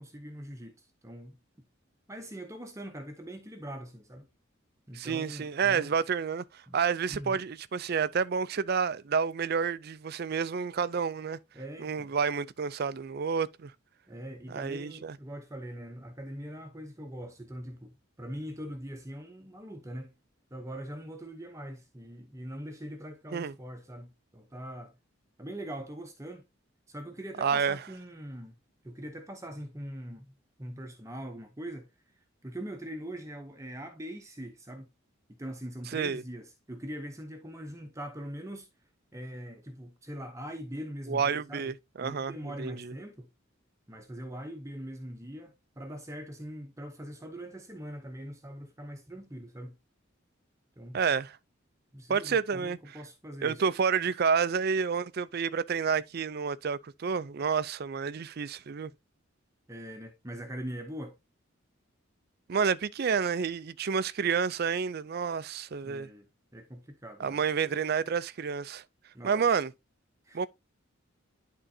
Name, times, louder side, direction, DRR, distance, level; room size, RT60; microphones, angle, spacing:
voice 1, 0.0-1.4 2.1-4.3 4.9-5.9 6.7-6.8 7.1-7.4 11.5-12.1 14.1-20.1 20.5-25.0 25.4-26.5 26.9-28.6 28.8-30.3 30.6-31.9 32.4-34.9 35.3-38.7 39.1-41.7 42.0-43.3 43.9-49.7 50.8-51.0 51.9-53.6 59.7-61.2 65.8-66.3 66.5-67.4 69.1-69.4 70.2-70.5, equal, 15° right, 0.8 m, -42 dB
voice 2, 4.9-11.4 11.8-13.7 14.5-15.2 23.3-23.5 27.4-27.8 35.9-36.2 41.1-42.9 50.9-51.4 52.1-53.0 53.4-58.9 62.5-66.1 67.2-68.8 69.2-69.7 70.3-70.5, right 6 dB, 50° right, 0.4 m, -29 dB
11.0 x 3.8 x 2.7 m
head